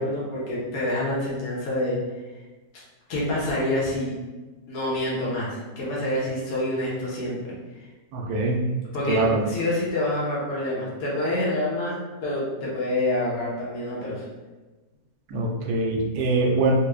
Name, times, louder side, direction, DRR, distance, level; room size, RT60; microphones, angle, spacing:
voice 1, 0.0-2.0 3.1-4.1 4.7-7.5 8.9-11.9 12.2-14.2, left 1 dB, 65° left, -7 dB, 1.3 m, -27 dB
voice 2, 8.1-8.7 9.1-9.4 15.3-16.7, right 2 dB, 85° right, -1 dB, 1.2 m, -23 dB
3.6 x 2.3 x 3.3 m, 1.2 s
omnidirectional pair, 1.7 m